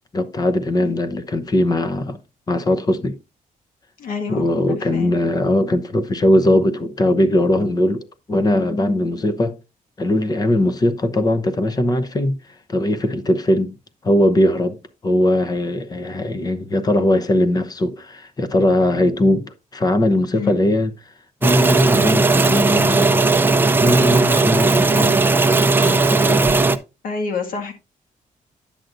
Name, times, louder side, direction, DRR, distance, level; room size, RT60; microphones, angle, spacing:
voice 1, 0.1-2.2 2.5-3.2 4.3-9.6 10.0-12.4 12.7-13.8 14.0-20.9 21.4-23.3 23.8-25.3 25.8-26.5, left 1 dB, 30° left, 0.8 m, -20 dB
voice 2, 4.0-5.1 20.3-20.6 27.0-27.7, left 5 dB, 80° left, 1.9 m, -28 dB
sound 1, 21.4-26.8, right 3 dB, 15° right, 0.6 m, -16 dB
10.0 x 7.8 x 2.6 m
wide cardioid pair, 145°, 14 cm